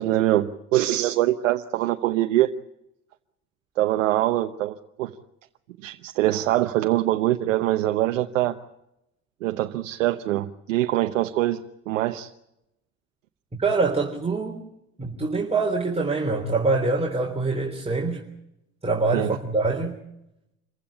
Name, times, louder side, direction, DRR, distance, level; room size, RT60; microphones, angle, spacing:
voice 1, 0.0-2.5 3.8-5.1 5.8-8.6 9.4-11.6 11.9-12.3 19.1-19.3, right 15 dB, 85° right, 6 dB, 0.9 m, -23 dB
voice 2, 13.6-14.6 15.0-18.2 18.8-20.0, right 3 dB, 15° right, -1 dB, 3.5 m, -24 dB
27.5 x 15.5 x 8.8 m, 0.85 s
hypercardioid pair, 70°, 37 cm